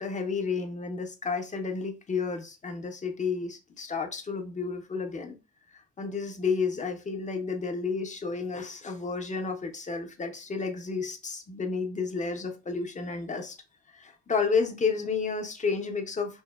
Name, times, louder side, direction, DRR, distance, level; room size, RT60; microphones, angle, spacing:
voice 1, 0.0-5.3 5.7-13.5 13.9-16.4, left 5 dB, 25° left, 0.5 m, -31 dB
2.7 x 2.1 x 2.2 m
cardioid pair, 90°, 30 cm